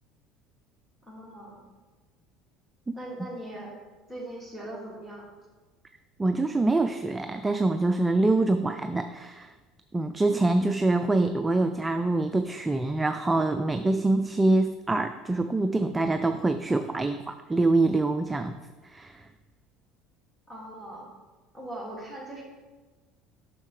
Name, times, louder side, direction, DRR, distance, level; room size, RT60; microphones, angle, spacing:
voice 1, 1.1-1.6 2.9-3.8 4.1-5.3 20.5-21.1 21.5-22.4, right 1 dB, ahead, -5 dB, 2.4 m, -40 dB
voice 2, 6.2-9.5 9.9-18.6 18.8-19.3, right 2 dB, 15° right, 8 dB, 0.3 m, -25 dB
7.4 x 6.3 x 3.3 m, 1.3 s
supercardioid pair, 85°, 0 cm